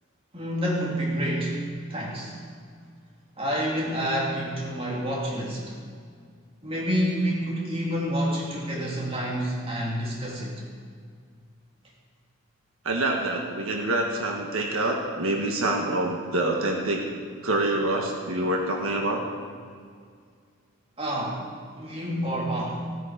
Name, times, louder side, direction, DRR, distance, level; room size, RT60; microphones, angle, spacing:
voice 1, 0.3-2.4 3.4-5.8 6.6-10.6 21.0-21.4 21.7-22.9, equal, 25° right, -3 dB, 2.5 m, -28 dB
voice 2, 12.8-17.0 17.4-19.2, right 2 dB, 85° right, 1 dB, 1.5 m, -26 dB
16.0 x 8.7 x 5.1 m, 2.1 s
head